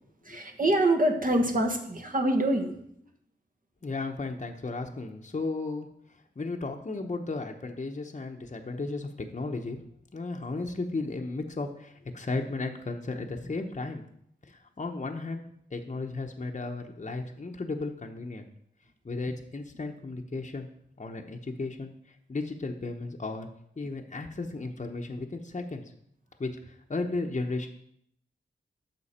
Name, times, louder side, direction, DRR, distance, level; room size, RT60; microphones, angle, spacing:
voice 1, 0.2-2.7, right 1 dB, 45° right, 4 dB, 1.4 m, -25 dB
voice 2, 3.8-5.9 6.4-9.8 10.1-14.0 14.5-15.4 15.7-18.5 19.0-20.7 21.0-21.9 22.3-23.5 23.8-25.8 26.4-27.7, left 3 dB, 40° left, 3 dB, 0.9 m, -34 dB
9.6 x 6.3 x 4.3 m, 0.71 s
cardioid pair, 55°, 20 cm